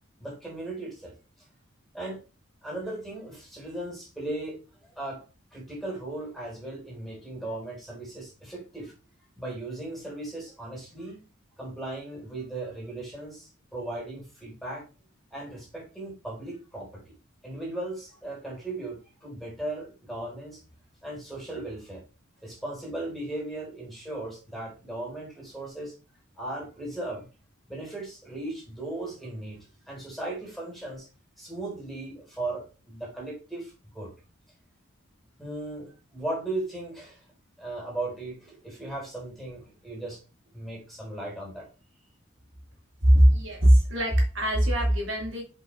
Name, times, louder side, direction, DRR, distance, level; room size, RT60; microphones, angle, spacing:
voice 1, 0.2-1.5 1.9-2.2 2.6-5.2 5.5-8.9 9.4-11.2 11.6-14.8 15.3-17.0 17.4-20.6 21.0-22.0 22.4-25.9 26.3-27.3 27.7-31.1 31.4-34.1 35.4-37.3 37.6-40.2 40.5-41.7, right 2 dB, ahead, -4 dB, 3.7 m, -37 dB
voice 2, 43.0-45.4, equal, 65° right, -1 dB, 2.5 m, -20 dB
7.4 x 5.5 x 3.1 m, 0.31 s
head